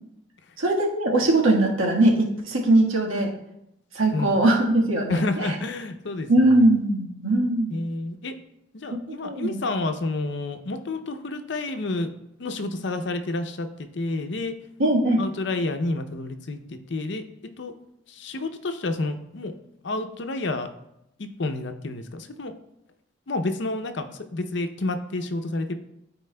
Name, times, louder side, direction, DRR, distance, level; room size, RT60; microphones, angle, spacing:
voice 1, 0.6-3.3 3.9-5.6 6.3-7.7 8.9-9.6 14.8-15.2, right 1 dB, 80° right, -1 dB, 1.5 m, -21 dB
voice 2, 4.1-4.5 5.1-6.3 7.7-8.3 8.7-12.1 12.4-14.5 15.2-17.2 17.6-17.7 18.1-19.5 19.8-20.7 21.2-22.5 23.3-25.8, left 2 dB, 60° left, 7 dB, 0.6 m, -29 dB
12.5 x 4.5 x 2.2 m, 0.81 s
head